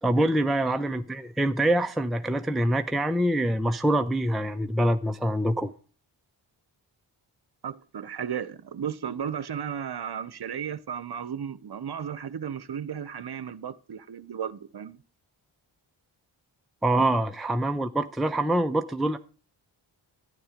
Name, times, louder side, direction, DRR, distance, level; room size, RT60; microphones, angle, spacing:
voice 1, 0.0-5.7 16.8-19.2, right 1 dB, ahead, 0.7 m, -25 dB
voice 2, 7.6-15.0 17.0-17.1, right 8 dB, 50° right, 0.9 m, -34 dB
11.0 x 9.5 x 5.0 m
cardioid pair, 50°, 49 cm